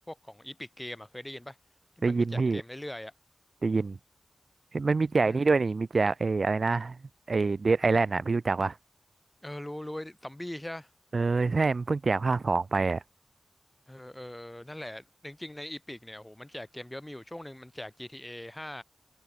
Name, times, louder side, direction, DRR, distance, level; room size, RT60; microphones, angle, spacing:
voice 1, 0.0-1.6 2.0-3.1 5.2-5.5 9.4-10.9 13.9-18.8, left 1 dB, 15° left, 1.3 m, -41 dB
voice 2, 2.0-2.6 3.6-4.0 4.7-7.0 7.3-8.8 11.1-13.0, right 4 dB, 60° right, 0.3 m, -26 dB
wide cardioid pair, 80°, 0 cm